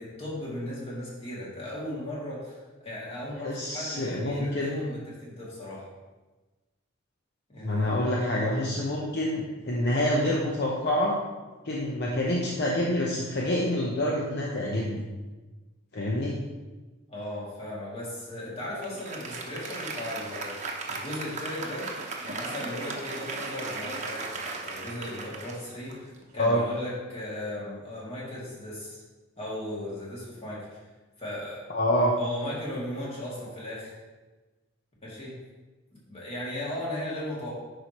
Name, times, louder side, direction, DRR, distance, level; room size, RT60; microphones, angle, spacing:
voice 1, 0.0-5.9 7.5-8.0 17.1-20.6 20.9-21.9 22.2-29.0 29.4-30.8 31.2-31.6 32.1-33.9 35.0-35.4 35.9-37.5, left 1 dB, 30° left, -6 dB, 2.5 m, -37 dB
voice 2, 3.4-4.8 7.6-11.2 11.6-15.0 15.9-16.3 26.4-26.6 31.7-32.1, left 1 dB, 55° left, -3 dB, 0.9 m, -27 dB
Applause, 18.8-26.4, right 3 dB, 35° right, 0.9 m, -37 dB
10.0 x 5.0 x 3.0 m, 1.2 s
head